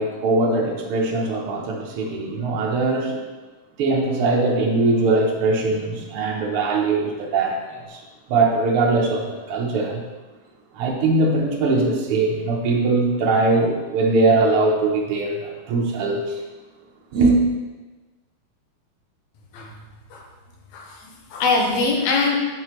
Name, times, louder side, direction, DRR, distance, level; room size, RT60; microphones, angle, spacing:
voice 1, 0.0-3.2 3.8-8.0 8.3-10.0 10.7-16.4 17.1-17.4, right 3 dB, 75° right, -1 dB, 1.2 m, -21 dB
voice 2, 20.7-22.4, left 3 dB, 70° left, 0 dB, 2.2 m, -22 dB
7.8 x 5.9 x 3.0 m, 1.2 s
omnidirectional pair, 3.7 m